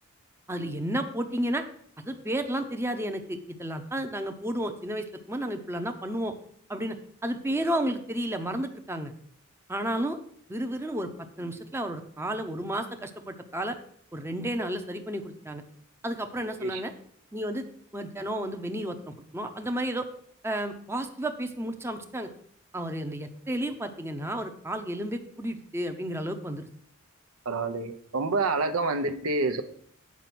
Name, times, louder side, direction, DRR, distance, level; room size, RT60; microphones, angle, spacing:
voice 1, 0.5-1.6 2.0-6.3 6.7-7.0 7.2-9.1 9.7-10.2 10.5-11.1 11.4-13.8 14.1-15.6 16.0-16.9 17.3-17.7 17.9-19.0 19.3-20.1 20.4-22.3 22.7-26.7, right 1 dB, 10° right, 6 dB, 0.7 m, -32 dB
voice 2, 27.5-29.6, right 3 dB, 85° right, 9 dB, 0.9 m, -28 dB
8.4 x 5.4 x 6.0 m, 0.62 s
head